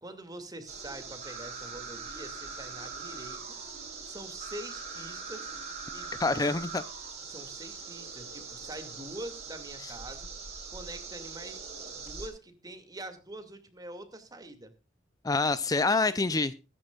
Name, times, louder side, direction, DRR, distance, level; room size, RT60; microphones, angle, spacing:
voice 1, 0.0-3.4 4.0-5.5 5.9-6.4 7.3-10.3 10.7-11.6 11.9-14.7 16.1-16.2, right 1 dB, 20° right, 2.4 m, -44 dB
sound 1, 0.7-12.3, right 4 dB, 35° right, 5.2 m, -42 dB
voice 2, 6.2-6.8 15.2-16.5, left 3 dB, 20° left, 0.5 m, -26 dB
22.0 x 11.0 x 2.4 m
head